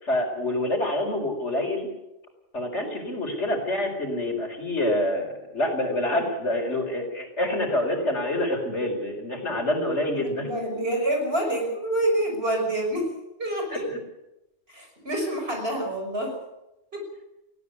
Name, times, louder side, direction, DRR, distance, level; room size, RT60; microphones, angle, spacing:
voice 1, 0.0-1.9 2.5-10.5 13.7-13.8, left 1 dB, 75° left, 3 dB, 5.0 m, -27 dB
voice 2, 10.1-13.1 13.4-13.9 14.7-16.4 16.9-17.1, right 1 dB, 60° right, 2 dB, 6.2 m, -27 dB
19.0 x 16.5 x 8.3 m, 0.94 s
omnidirectional pair, 1.2 m